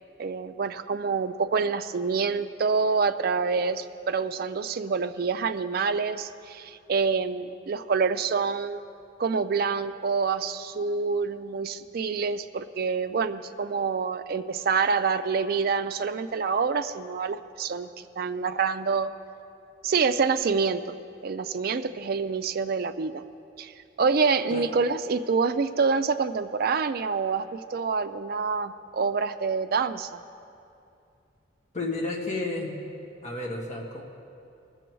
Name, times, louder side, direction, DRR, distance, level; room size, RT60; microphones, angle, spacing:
voice 1, 0.2-8.8 9.2-19.1 19.8-20.9 21.2-23.2 23.6-23.7 24.0-30.2, right 5 dB, 50° right, 10 dB, 0.4 m, -27 dB
voice 2, 31.7-32.8 33.2-34.0, left 2 dB, 40° left, -2 dB, 1.5 m, -31 dB
19.5 x 7.0 x 4.6 m, 2.5 s
head